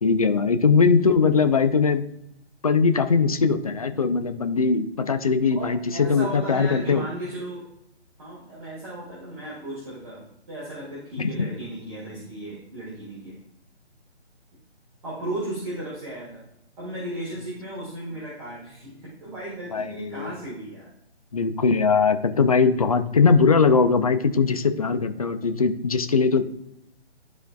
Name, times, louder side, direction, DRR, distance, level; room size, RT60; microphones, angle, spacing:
voice 1, 0.0-2.1 2.6-7.0 11.2-11.5 19.7-20.3 21.3-26.4, left 5 dB, 35° left, 8 dB, 0.5 m, -20 dB
voice 2, 5.5-7.7 8.2-13.4 15.0-16.4 16.8-20.9, right 1 dB, 30° right, -7 dB, 2.2 m, -35 dB
13.0 x 4.4 x 2.3 m, 0.80 s
figure-of-eight pair, 145°, 34 cm